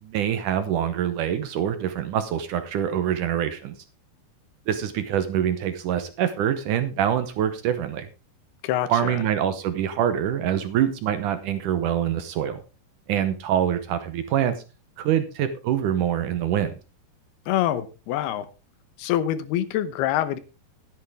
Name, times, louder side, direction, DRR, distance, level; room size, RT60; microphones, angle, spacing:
voice 1, 0.0-3.7 4.7-8.1 8.9-12.6 13.1-14.6 15.0-16.7, right 10 dB, 75° right, 1.9 m, -25 dB
voice 2, 8.6-9.2 17.5-18.5 19.0-20.4, left 12 dB, 75° left, 2.8 m, -25 dB
13.5 x 10.5 x 3.5 m
omnidirectional pair, 4.8 m